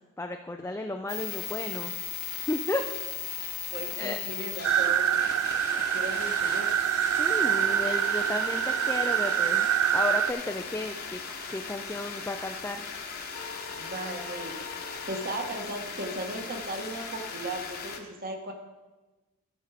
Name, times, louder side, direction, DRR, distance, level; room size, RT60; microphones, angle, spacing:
voice 1, 0.2-1.9 2.5-2.8 3.9-4.2 7.2-9.7 9.9-11.2 11.5-12.8, left 2 dB, 10° left, 4 dB, 0.4 m, -33 dB
sound 1, 1.1-18.0, left 6 dB, 45° left, 1.1 m, -38 dB
voice 2, 3.7-5.3 5.7-6.7 13.8-14.6 15.1-18.5, right 1 dB, 45° right, 3 dB, 1.5 m, -36 dB
sound 2, 4.6-10.3, right 10 dB, 75° right, 0.4 m, -26 dB
14.0 x 6.2 x 4.9 m, 1.2 s
head